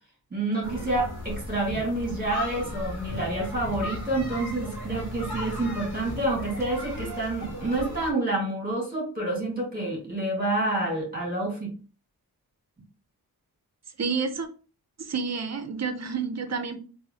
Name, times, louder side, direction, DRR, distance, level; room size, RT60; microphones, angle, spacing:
voice 1, 0.3-11.7, right 2 dB, 25° right, -1 dB, 1.9 m, -28 dB
sound 1, 0.6-8.1, left 1 dB, 75° left, 1.4 m, -36 dB
voice 2, 14.0-14.5 15.0-16.8, right 5 dB, 45° right, 8 dB, 0.6 m, -29 dB
3.5 x 2.6 x 2.7 m, 0.37 s
wide cardioid pair, 110°, 38 cm